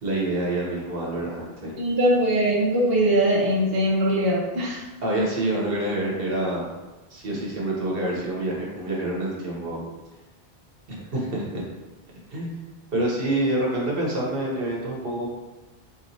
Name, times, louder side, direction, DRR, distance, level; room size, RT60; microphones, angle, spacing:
voice 1, 0.0-1.8 5.0-6.7 7.1-9.8 10.9-11.6 12.3-12.5 12.9-15.3, right 1 dB, 60° right, -3 dB, 1.1 m, -27 dB
voice 2, 1.8-4.8, right 1 dB, 25° right, -5 dB, 0.7 m, -21 dB
4.3 x 3.0 x 2.7 m, 1.1 s
omnidirectional pair, 1.1 m